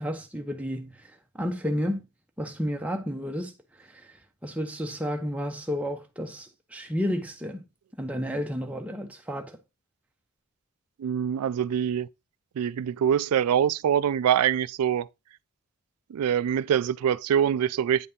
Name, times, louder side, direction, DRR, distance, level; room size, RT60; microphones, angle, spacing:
voice 1, 0.0-2.1 2.4-7.6 8.0-9.6, equal, 5° right, 0.8 m, -32 dB
voice 2, 11.0-12.1 12.6-15.1 16.1-18.1, right 9 dB, 90° right, 0.3 m, -24 dB
8.8 x 4.1 x 3.6 m
head